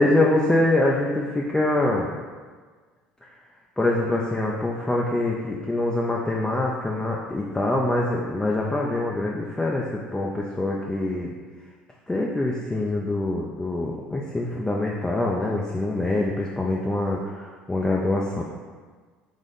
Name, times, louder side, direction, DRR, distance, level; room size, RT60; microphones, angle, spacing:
voice 1, 0.0-2.1 3.2-3.3 3.8-11.3 12.1-18.4, left 2 dB, 10° left, -3 dB, 0.5 m, -24 dB
3.6 x 3.4 x 4.0 m, 1.5 s
hypercardioid pair, 65°, 5 cm